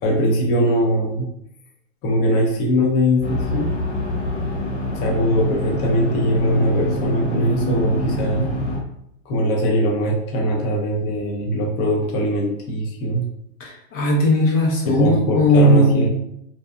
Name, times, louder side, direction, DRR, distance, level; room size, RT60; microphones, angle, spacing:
voice 1, 0.0-1.3 2.0-3.7 5.0-8.4 9.3-13.3 14.8-16.1, equal, 30° left, -2 dB, 0.4 m, -21 dB
sound 1, 3.2-8.8, left 1 dB, 50° left, 1.3 m, -25 dB
voice 2, 13.6-16.1, equal, 80° left, -2 dB, 1.0 m, -17 dB
2.6 x 2.1 x 2.4 m, 0.77 s
hypercardioid pair, 125°, 38 cm